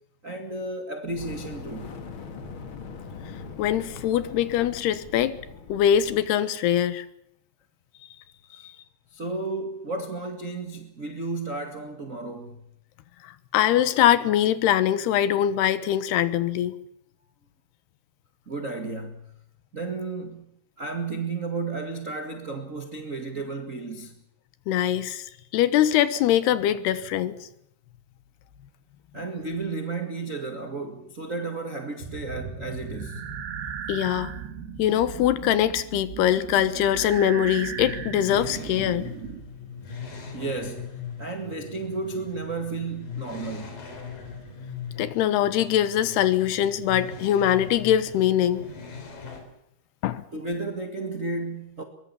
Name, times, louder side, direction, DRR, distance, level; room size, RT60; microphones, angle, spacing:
voice 1, 0.2-1.9 9.1-12.6 18.5-19.3 19.7-20.5 20.8-24.1 29.1-33.2 40.3-40.9 41.2-43.8 50.3-51.8, right 3 dB, 30° right, 1.6 m, -33 dB
Fire, 1.0-6.3, left 4 dB, 40° left, 2.1 m, -41 dB
voice 2, 3.6-5.4 5.7-7.1 13.2-16.7 24.7-25.3 25.5-27.3 33.9-34.3 34.8-39.1 45.0-48.6 50.0-50.2, left 11 dB, 85° left, 3.3 m, -22 dB
sound 1, 32.0-39.4, right 7 dB, 70° right, 4.6 m, -36 dB
sound 2, 37.8-49.4, left 6 dB, 60° left, 5.4 m, -40 dB
23.5 x 22.0 x 7.1 m
omnidirectional pair, 4.6 m